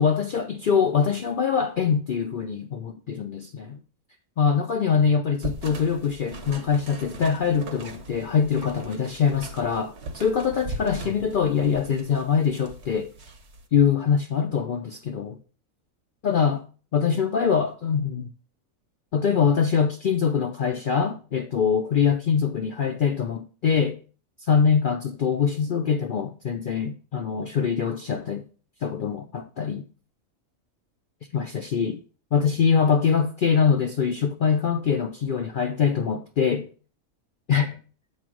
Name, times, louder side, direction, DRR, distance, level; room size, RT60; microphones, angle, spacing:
voice 1, 0.0-3.8 4.4-13.1 13.7-15.4 16.2-16.6 16.9-18.3 19.1-24.0 24.5-28.4 28.8-29.9 31.3-32.0 32.3-36.7 37.5-37.8, left 6 dB, 65° left, 0.5 m, -23 dB
sound 1, 5.4-13.6, right 2 dB, 55° right, 1.2 m, -40 dB
7.9 x 3.2 x 6.0 m
omnidirectional pair, 1.5 m